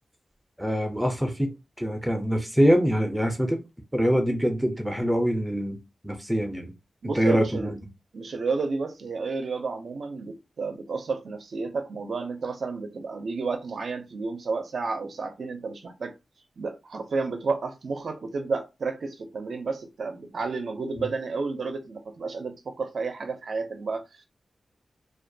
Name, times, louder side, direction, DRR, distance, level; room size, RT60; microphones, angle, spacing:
voice 1, 0.6-3.6 3.9-5.8 6.0-6.7 7.1-7.7 21.0-21.1, equal, 5° right, 0.4 m, -24 dB
voice 2, 7.0-7.7 8.1-16.1 16.6-24.3, right 4 dB, 65° right, 0.4 m, -31 dB
2.2 x 2.1 x 2.6 m
wide cardioid pair, 130°, 0 cm